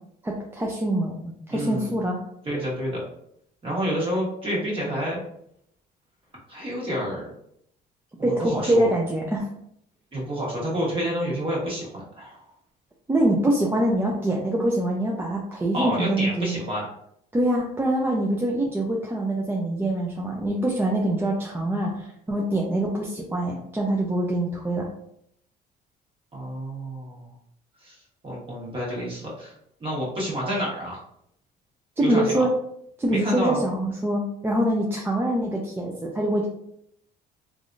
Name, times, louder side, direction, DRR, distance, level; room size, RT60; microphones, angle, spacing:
voice 1, 0.2-2.2 8.2-9.5 13.1-16.6 17.3-24.9 32.0-32.5 33.0-36.5, right 1 dB, 15° right, -2 dB, 0.4 m, -24 dB
voice 2, 1.5-1.9 2.4-3.0 3.6-5.2 6.5-7.3 8.3-8.9 10.1-12.4 15.7-16.9 26.3-27.3 27.8-29.5 29.8-31.0 32.0-32.4 33.1-33.6, equal, 30° right, -4 dB, 1.4 m, -29 dB
3.3 x 2.4 x 2.6 m, 0.72 s
cardioid pair, 110°, 17 cm